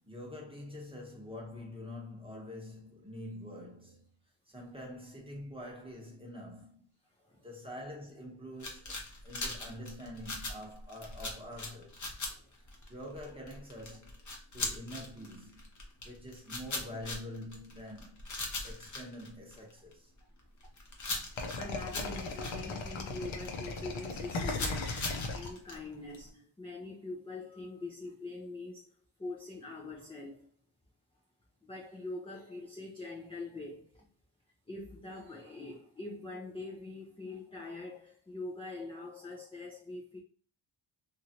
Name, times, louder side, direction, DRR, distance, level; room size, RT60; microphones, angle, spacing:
voice 1, 0.0-4.1 4.5-6.8 7.4-12.1 12.6-14.2 14.5-15.7 16.0-18.2 18.6-20.1, left 1 dB, 10° right, 0.9 m, -46 dB
sound 1, 8.6-19.9 20.4-23.8 24.0-25.7, left 2 dB, 40° left, 0.8 m, -40 dB
voice 2, 21.3-30.5 31.6-34.1 34.7-40.2, left 2 dB, 10° left, 0.5 m, -44 dB
sound 2, 21.4-26.2, left 3 dB, 75° left, 0.8 m, -37 dB
3.0 x 2.5 x 2.7 m
wide cardioid pair, 115°, 47 cm